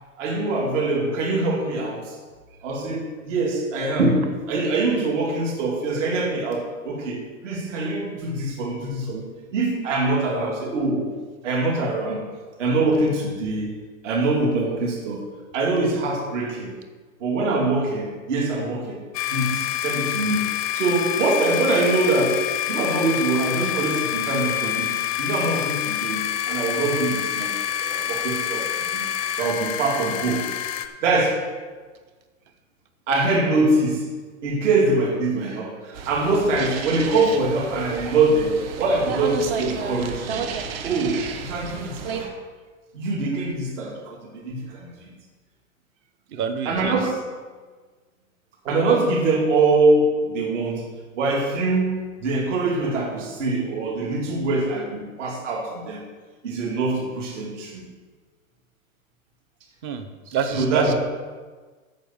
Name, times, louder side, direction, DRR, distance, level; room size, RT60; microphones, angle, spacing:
voice 1, 0.2-2.2 2.6-9.3 9.5-11.1 11.4-12.2 12.6-13.7 14.0-15.2 15.5-16.7 17.2-19.0 19.3-27.5 27.8-29.1 29.3-30.5 31.0-31.4 33.1-34.1 34.4-40.4 40.8-42.3 42.9-45.1 46.6-47.2 48.6-50.9 51.1-56.0 56.4-57.9 60.5-60.9, right 2 dB, 60° right, -1 dB, 2.8 m, -23 dB
sound 1, 19.1-30.9, left 11 dB, 30° left, 0.5 m, -27 dB
sound 2, 35.9-42.2, right 6 dB, 45° right, 1.0 m, -32 dB
voice 2, 46.3-46.9 59.8-60.9, right 7 dB, 25° right, 8 dB, 0.7 m, -27 dB
8.8 x 7.1 x 7.1 m, 1.4 s
supercardioid pair, 160°, 41 cm